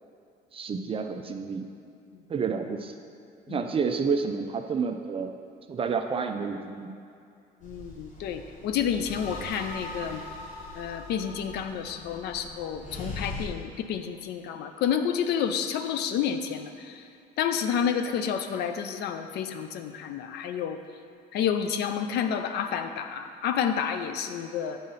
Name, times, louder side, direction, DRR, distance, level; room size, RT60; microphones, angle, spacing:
voice 1, 0.5-1.6 2.3-2.9 3.5-5.3 5.7-6.9, right 5 dB, 35° right, 5 dB, 0.5 m, -29 dB
voice 2, 7.6-10.2 10.7-17.1 17.4-20.8 21.3-24.8, left 8 dB, 75° left, 8 dB, 0.5 m, -30 dB
sound 1, 7.6-13.5, left 1 dB, 45° left, 1.4 m, -41 dB
8.3 x 3.8 x 5.6 m, 2.5 s
cardioid pair, 110°, 17 cm